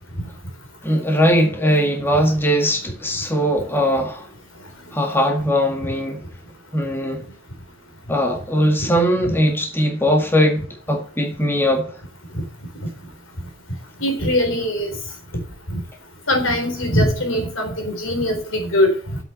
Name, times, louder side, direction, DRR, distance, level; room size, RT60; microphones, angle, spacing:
voice 1, 0.8-4.3 4.9-6.2 6.7-7.2 8.1-11.9, equal, 10° left, 1.9 m, -20 dB
voice 2, 14.0-14.9 15.7-15.8 16.3-19.2, left 1 dB, 85° left, 3.9 m, -21 dB
8.1 x 7.3 x 8.0 m
head